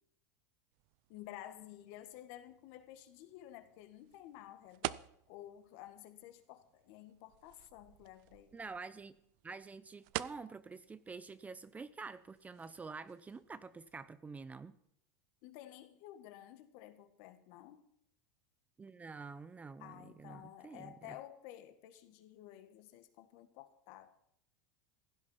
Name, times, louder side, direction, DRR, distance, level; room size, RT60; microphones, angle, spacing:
sound 1, 0.7-14.0, right 19 dB, 60° right, 0.5 m, -50 dB
voice 1, 1.1-8.6 15.4-17.8 19.8-24.1, left 13 dB, 60° left, 1.8 m, -53 dB
voice 2, 8.5-9.2 9.4-14.8 18.8-21.2, right 4 dB, 15° right, 0.6 m, -48 dB
16.0 x 11.5 x 5.7 m
supercardioid pair, 125°, 10 cm